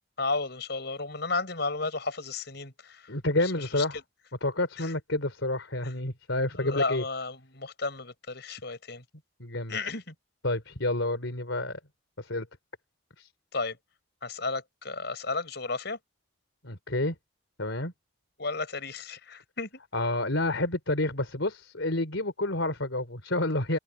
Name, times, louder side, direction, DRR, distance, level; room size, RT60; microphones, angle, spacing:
voice 1, 0.2-3.1 3.4-3.8 4.8-4.9 5.8-5.9 6.6-9.0 9.7-10.1 13.5-13.8 14.2-16.0 18.4-19.7, left 3 dB, 55° left, 5.8 m, -33 dB
voice 2, 3.1-4.0 4.4-7.0 9.4-9.8 10.4-11.8 12.2-12.5 13.2-13.3 16.6-17.2 17.6-17.9 19.9-23.8, left 2 dB, 70° left, 3.6 m, -29 dB
head